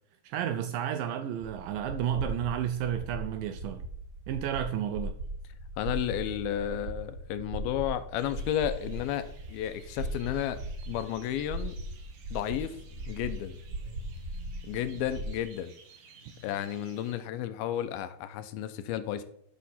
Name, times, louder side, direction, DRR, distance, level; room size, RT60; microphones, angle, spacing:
voice 1, 0.2-3.8 4.3-5.2, right 10 dB, 85° right, 1.9 m, -32 dB
sound 1, 1.4-15.4, right 1 dB, 40° right, 4.4 m, -39 dB
voice 2, 5.8-11.8 12.3-12.8 13.1-13.6 14.6-15.7 16.4-19.2, left 11 dB, 80° left, 2.4 m, -32 dB
sound 2, 8.2-17.2, right 5 dB, 60° right, 2.8 m, -56 dB
12.5 x 6.4 x 4.2 m
omnidirectional pair, 4.6 m